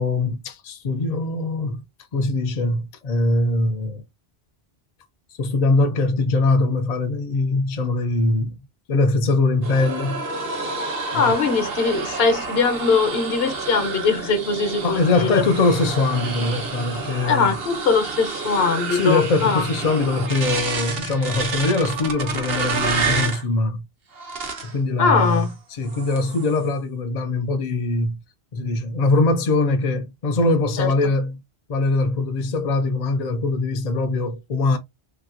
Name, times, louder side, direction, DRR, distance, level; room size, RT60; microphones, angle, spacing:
voice 1, 0.0-1.8 2.1-4.0 5.4-8.6 8.9-10.7 11.1-11.3 14.8-17.6 18.9-23.9 24.6-28.2 28.5-31.4 31.7-34.8, left 2 dB, 50° left, 0.6 m, -22 dB
sound 1, 9.6-23.4 24.2-24.8 25.2-25.5 25.9-26.6, right 4 dB, 65° right, 1.0 m, -29 dB
voice 2, 11.1-15.4 17.2-19.6 25.0-25.5 30.8-30.9, left 5 dB, 70° left, 1.0 m, -21 dB
3.3 x 2.8 x 2.4 m
omnidirectional pair, 1.1 m